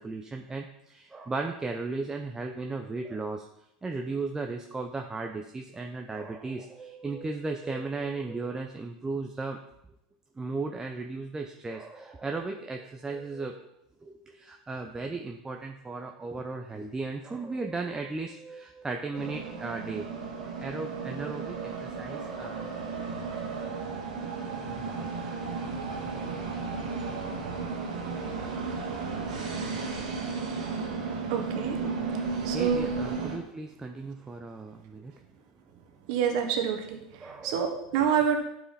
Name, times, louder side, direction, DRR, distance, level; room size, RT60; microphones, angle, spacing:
voice 1, 0.0-3.5 3.8-9.6 10.4-13.7 14.0-20.1 20.3-22.9 23.2-23.4 31.8-35.2 37.2-37.6 37.9-38.4, right 3 dB, 15° right, 3 dB, 0.7 m, -36 dB
sound 1, 19.1-33.4, right 4 dB, 80° right, 1.8 m, -34 dB
voice 2, 31.3-31.8 32.4-32.9 36.1-37.0 37.4-38.4, right 8 dB, 65° right, 4 dB, 1.4 m, -27 dB
11.0 x 4.9 x 4.2 m, 0.82 s
hypercardioid pair, 90°, 4 cm